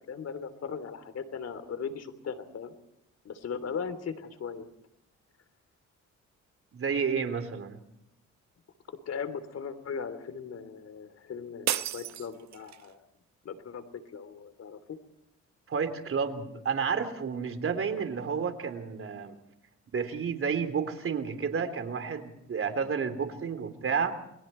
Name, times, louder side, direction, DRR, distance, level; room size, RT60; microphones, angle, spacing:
voice 1, 0.0-2.7 3.2-4.7 8.9-13.0 13.4-13.8 14.1-15.0, left 6 dB, 55° left, 12 dB, 3.2 m, -38 dB
voice 2, 6.7-7.8 15.7-19.4 19.9-24.1, right 6 dB, 45° right, 8 dB, 3.5 m, -31 dB
sound 1, 11.7-12.9, right 12 dB, 65° right, 0.9 m, -33 dB
29.0 x 22.0 x 4.5 m, 0.81 s
cardioid pair, 90°, 30 cm